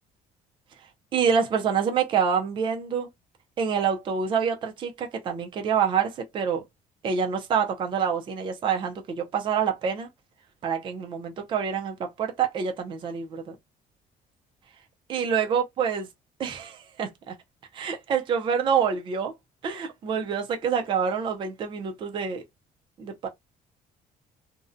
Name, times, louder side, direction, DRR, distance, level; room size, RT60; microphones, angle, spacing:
voice 1, 1.1-3.1 3.6-6.6 7.0-10.1 10.6-13.5 15.1-16.1 16.4-17.3 17.7-19.3 19.6-22.4 23.0-23.3, right 7 dB, 35° right, 0.4 m, -26 dB
2.5 x 2.0 x 2.5 m
cardioid pair, 165°, 15 cm